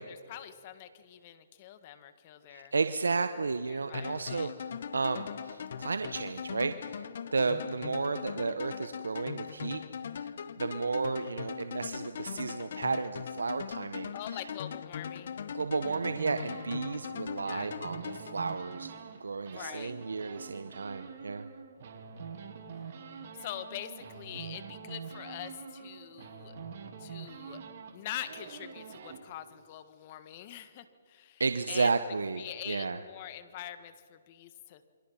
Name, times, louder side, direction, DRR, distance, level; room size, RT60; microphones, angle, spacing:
voice 1, 0.0-2.7 3.7-4.5 14.1-15.5 17.0-17.7 19.4-19.9 23.4-26.5 27.0-27.6 27.9-31.4 31.7-31.9 32.4-34.8, left 12 dB, 35° left, 12 dB, 1.6 m, -44 dB
voice 2, 2.5-7.0 7.3-9.8 10.2-10.3 10.6-14.1 15.5-18.9 19.2-21.5 31.4-33.0, right 4 dB, 90° right, 10 dB, 1.0 m, -33 dB
moto moto, 3.9-19.0, left 7 dB, 60° left, 0.9 m, -40 dB
sound 1, 15.8-19.2 19.5-29.2, right 6 dB, 50° right, 3.2 m, -45 dB
28.5 x 24.0 x 5.7 m, 2.2 s
hypercardioid pair, 150°, 0 cm